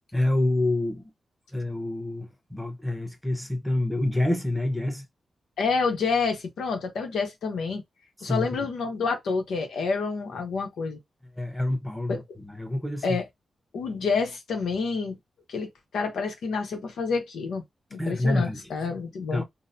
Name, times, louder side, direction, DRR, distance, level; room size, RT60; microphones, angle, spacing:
voice 1, 0.1-1.0 1.5-5.1 8.3-8.5 11.4-13.2 18.0-18.6 19.3-19.4, left 1 dB, ahead, 1.0 m, -27 dB
voice 2, 5.6-7.8 8.2-11.0 12.1-12.2 13.0-13.2 13.7-15.2 15.5-15.7 15.9-17.6 17.9-19.4, left 4 dB, 90° left, 0.8 m, -28 dB
4.0 x 2.0 x 2.6 m
cardioid pair, 65°, 0 cm